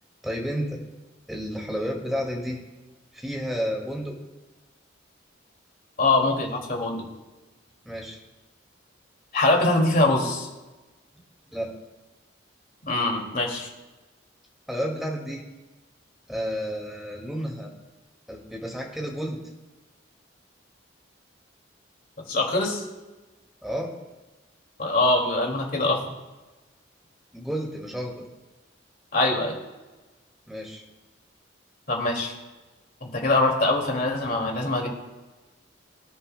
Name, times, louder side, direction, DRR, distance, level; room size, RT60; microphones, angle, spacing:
voice 1, 0.2-0.8 1.3-2.6 3.1-4.2 7.8-8.2 11.5-11.8 14.7-15.4 16.3-17.7 18.3-19.4 23.6-23.9 27.3-28.2 30.5-30.8, equal, ahead, -1 dB, 2.1 m, -31 dB
voice 2, 6.0-7.1 9.3-10.5 12.9-13.7 22.3-22.8 24.8-26.0 29.1-29.6 31.9-32.3 33.0-34.9, left 2 dB, 45° left, 1 dB, 2.4 m, -23 dB
23.5 x 10.0 x 2.2 m, 1.2 s
head